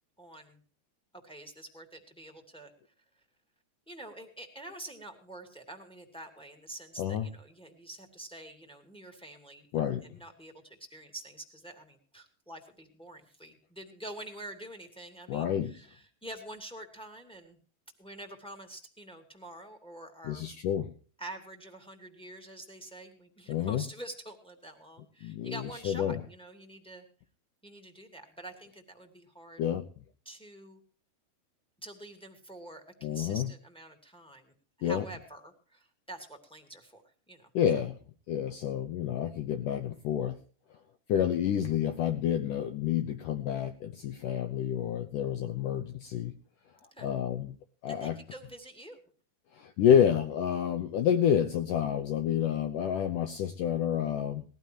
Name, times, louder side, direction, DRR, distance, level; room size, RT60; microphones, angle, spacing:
voice 1, 0.2-0.6 1.2-2.7 3.9-17.6 18.0-20.4 21.2-27.0 27.6-29.6 30.2-30.8 31.8-34.4 34.8-37.0 37.3-37.5 46.9-47.1 47.9-49.0, right 1 dB, ahead, 4 dB, 1.3 m, -47 dB
voice 2, 7.0-7.3 9.7-10.1 15.3-15.7 20.2-20.9 23.5-23.8 25.2-26.2 29.6-29.9 33.0-33.5 34.8-35.1 37.5-37.9 38.3-40.4 41.1-46.3 47.0-47.5 47.8-48.2 49.5-54.4, left 9 dB, 75° left, 7 dB, 2.0 m, -29 dB
20.0 x 15.0 x 3.0 m, 0.40 s
omnidirectional pair, 4.9 m